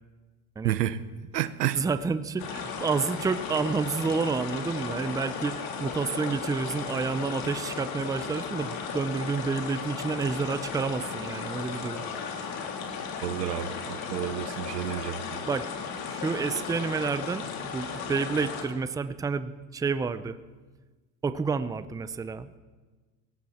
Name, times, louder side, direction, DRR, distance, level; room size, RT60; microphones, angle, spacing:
voice 1, 0.6-1.0 1.3-1.8 13.2-15.4, right 12 dB, 90° right, 15 dB, 1.0 m, -30 dB
voice 2, 1.7-12.0 15.5-15.7 16.0-17.4 17.7-20.4 21.2-22.6, right 4 dB, 10° right, 13 dB, 0.5 m, -29 dB
sound 1, 2.4-18.6, left 6 dB, 50° left, 3.7 m, -35 dB
20.0 x 17.0 x 4.3 m, 1.3 s
hypercardioid pair, 105°, 47 cm